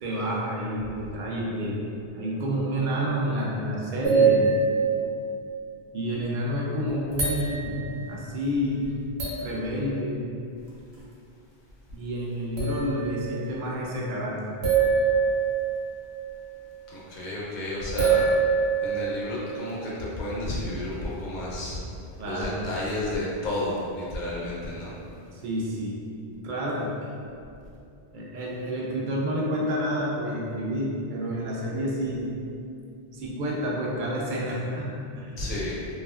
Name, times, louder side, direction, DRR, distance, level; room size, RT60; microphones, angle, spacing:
voice 1, 0.0-1.9 2.1-4.6 5.9-7.8 8.1-8.9 9.4-10.2 11.9-14.4 22.2-22.6 25.3-26.0 26.4-27.1 28.1-32.3 33.1-35.4, equal, 60° right, -4 dB, 0.6 m, -29 dB
sound 1, 4.0-5.6 6.2-6.3 6.9-8.0 8.8-8.9 9.2-9.5 11.9-12.0 12.6-13.4 14.6-16.3 18.0-19.6 20.9-21.0, right 5 dB, 75° right, 0.9 m, -24 dB
voice 2, 16.9-18.3 18.8-21.8 22.2-24.9 35.4-35.8, left 1 dB, 55° left, -6 dB, 0.7 m, -31 dB
2.7 x 2.3 x 2.3 m, 2.6 s
omnidirectional pair, 1.1 m